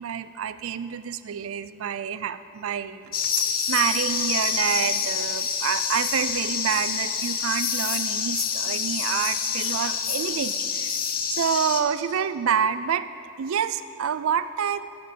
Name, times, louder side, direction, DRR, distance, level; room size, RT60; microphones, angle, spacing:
voice 1, 0.0-10.9 11.3-13.1 13.4-15.0, right 8 dB, 70° right, 14 dB, 0.4 m, -28 dB
sound 1, 3.1-11.8, left 7 dB, 45° left, 0.7 m, -27 dB
11.0 x 6.5 x 6.7 m, 2.5 s
head